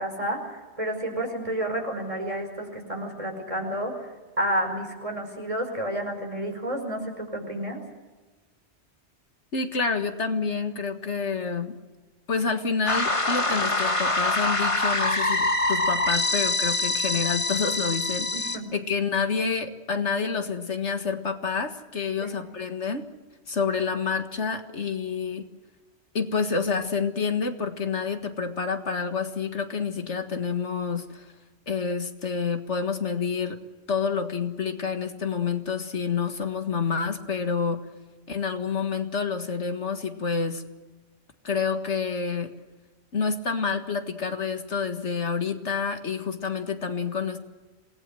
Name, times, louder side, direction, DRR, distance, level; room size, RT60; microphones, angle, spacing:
voice 1, 0.0-4.1 4.4-7.8 18.3-18.7 22.2-22.3, right 1 dB, 30° right, 3 dB, 5.2 m, -30 dB
voice 2, 9.5-11.8 12.3-18.3 18.7-23.1 23.5-25.4 26.1-31.3 31.7-33.6 33.9-37.8 38.3-40.6 41.4-42.5 43.1-47.4, left 5 dB, 80° left, 7 dB, 2.1 m, -28 dB
sound 1, 12.9-18.6, left 2 dB, 25° left, 1.7 m, -25 dB
27.5 x 19.0 x 7.8 m, 1.2 s
omnidirectional pair, 1.2 m